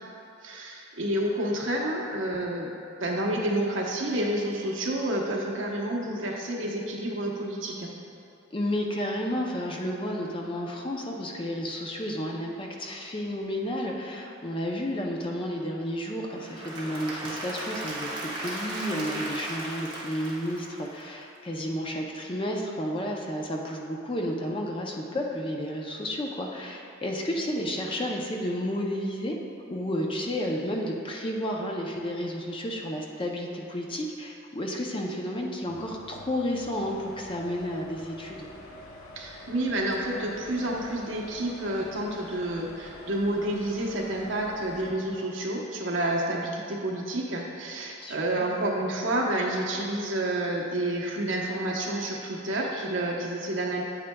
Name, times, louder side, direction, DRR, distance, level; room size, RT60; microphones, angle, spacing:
voice 1, 0.4-2.7 3.0-7.9 39.2-53.8, right 1 dB, 65° right, -2 dB, 0.9 m, -29 dB
voice 2, 8.5-29.4 29.7-38.5 48.0-48.5, equal, 25° left, 0 dB, 0.5 m, -32 dB
Applause / Crowd, 16.3-21.3, right 1 dB, 20° right, 1.1 m, -36 dB
sound 1, 35.7-44.9, left 2 dB, 85° left, 0.7 m, -47 dB
8.5 x 8.1 x 2.2 m, 2.7 s
head